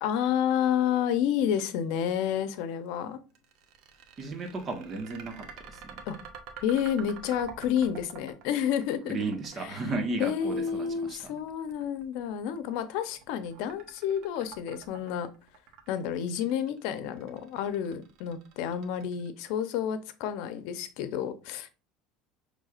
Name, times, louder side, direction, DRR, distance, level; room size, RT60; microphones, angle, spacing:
voice 1, 0.0-3.2 6.1-6.2 6.6-9.2 9.6-9.8 10.2-15.3 15.9-21.7, left 9 dB, 70° left, 0.7 m, -30 dB
sound 1, 3.3-19.5, right 6 dB, 65° right, 1.0 m, -48 dB
voice 2, 4.2-6.0 9.1-11.3, right 3 dB, 30° right, 1.2 m, -34 dB
6.4 x 3.4 x 2.5 m
supercardioid pair, 120°, 0 cm